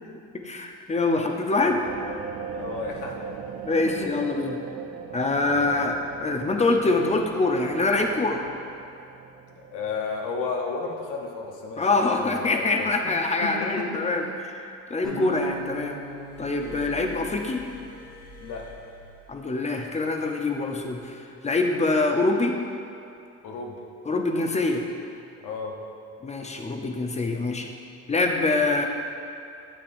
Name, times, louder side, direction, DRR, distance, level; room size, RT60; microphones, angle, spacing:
voice 1, 0.3-1.8 3.7-4.6 5.1-8.4 11.8-16.0 16.4-17.7 19.3-21.2 21.4-22.6 24.1-24.8 26.2-27.7 28.1-28.9, left 3 dB, 20° left, 3 dB, 0.7 m, -25 dB
sound 1, 1.8-10.7, right 6 dB, 55° right, 0.5 m, -40 dB
voice 2, 2.5-3.1 3.8-4.1 5.4-5.8 9.7-13.1 13.4-14.4 15.0-15.2 16.6-16.8 18.4-18.6 23.4-23.8 25.4-25.8, left 4 dB, 90° left, 0 dB, 0.9 m, -33 dB
sound 2, 15.0-18.2, right 1 dB, ahead, 1.7 m, -40 dB
Glass, 16.2-19.8 20.8-21.0, left 2 dB, 50° left, 1.6 m, -46 dB
8.9 x 6.6 x 2.6 m, 2.5 s
cardioid pair, 90°, 30 cm